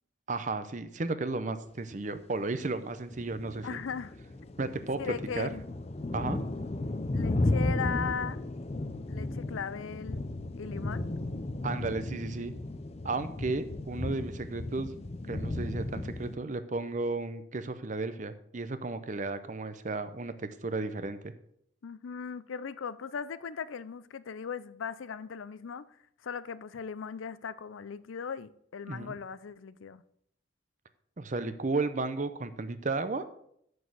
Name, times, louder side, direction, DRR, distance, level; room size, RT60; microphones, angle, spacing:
voice 1, 0.3-3.8 4.6-5.5 6.1-6.4 11.6-12.5 13.0-14.9 15.3-21.3 28.9-29.1 31.2-33.2, right 3 dB, 40° right, 0.6 m, -34 dB
sound 1, 3.1-16.4, left 2 dB, 30° left, 0.5 m, -34 dB
voice 2, 3.6-4.1 5.0-5.6 7.1-8.4 9.1-10.2 10.6-11.1 21.8-25.9 26.2-30.0, left 6 dB, 90° left, 0.5 m, -38 dB
7.1 x 6.4 x 6.1 m
head